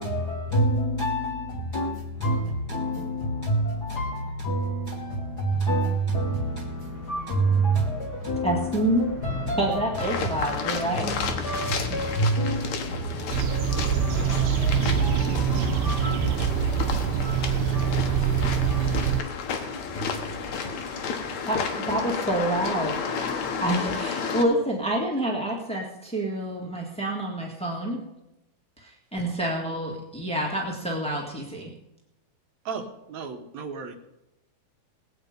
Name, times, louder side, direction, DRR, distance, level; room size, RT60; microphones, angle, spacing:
voice 1, 0.0-16.3 17.0-18.3 18.7-19.3 19.7-20.7, right 1 dB, 50° left, 0 dB, 1.2 m, -29 dB
Thunder / Rain, 5.5-23.9, left 1 dB, 20° left, 3.4 m, -42 dB
voice 2, 8.4-9.1 9.6-11.1 21.4-22.9 23.6-28.0 28.8-31.7, right 1 dB, 5° left, -2 dB, 0.6 m, -27 dB
sound 1, 10.0-24.4, left 6 dB, 65° left, 2.4 m, -32 dB
sound 2, 13.3-19.2, right 8 dB, 80° right, 2.1 m, -24 dB
voice 3, 32.7-34.0, right 5 dB, 65° right, 6 dB, 2.2 m, -36 dB
19.0 x 8.7 x 5.2 m, 0.90 s
omnidirectional pair, 3.7 m